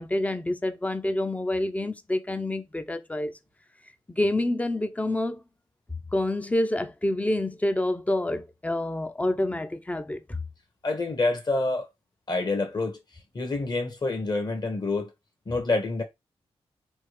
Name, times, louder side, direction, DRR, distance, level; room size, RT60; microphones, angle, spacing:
voice 1, 0.0-3.3 4.1-5.4 6.1-10.4, left 1 dB, 15° left, 0.5 m, -27 dB
voice 2, 10.8-11.9 12.3-13.0 13.3-15.1 15.5-16.0, left 3 dB, 40° left, 1.3 m, -27 dB
3.6 x 2.4 x 3.1 m
cardioid pair, 55°, 11 cm